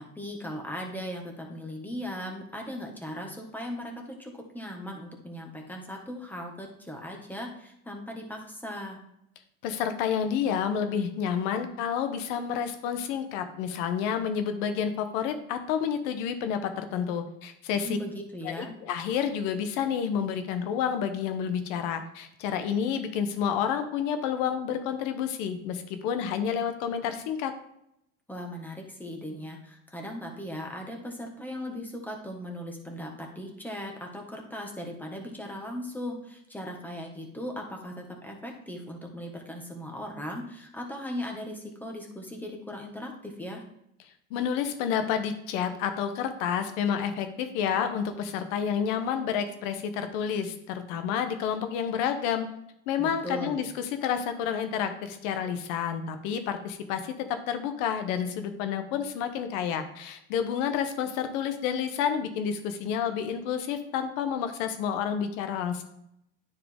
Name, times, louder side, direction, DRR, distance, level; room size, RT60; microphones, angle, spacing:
voice 1, 0.0-9.0 17.7-18.7 28.3-43.6 53.0-53.6, equal, 5° left, 1 dB, 1.6 m, -38 dB
voice 2, 9.6-18.0 18.4-27.5 44.3-52.5 52.9-65.8, left 8 dB, 80° left, 8 dB, 1.1 m, -29 dB
9.5 x 4.9 x 3.6 m, 0.78 s
supercardioid pair, 100°, 37 cm